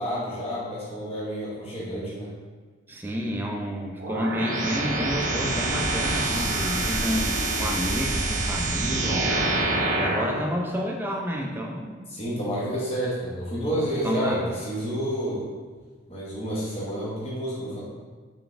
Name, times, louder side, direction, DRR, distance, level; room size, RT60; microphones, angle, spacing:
voice 1, 0.0-2.3 12.1-15.5 16.1-17.8, equal, 30° left, -7 dB, 0.8 m, -29 dB
voice 2, 2.9-9.3 9.9-12.0 13.7-14.4, equal, 10° right, 0 dB, 0.3 m, -30 dB
sound 1, 4.0-10.4, right 2 dB, 75° right, 0.6 m, -26 dB
3.8 x 3.4 x 2.5 m, 1.4 s
head